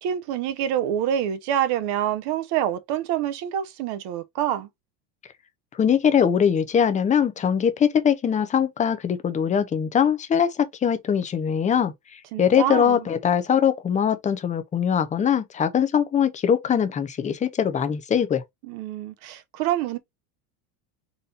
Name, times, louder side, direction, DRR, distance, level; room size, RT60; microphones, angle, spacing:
voice 1, 0.0-4.7 12.3-13.0 18.7-20.0, right 10 dB, 55° right, 0.9 m, -26 dB
voice 2, 5.7-18.4, left 8 dB, 15° left, 0.5 m, -22 dB
4.2 x 2.5 x 3.8 m
supercardioid pair, 125°, 49 cm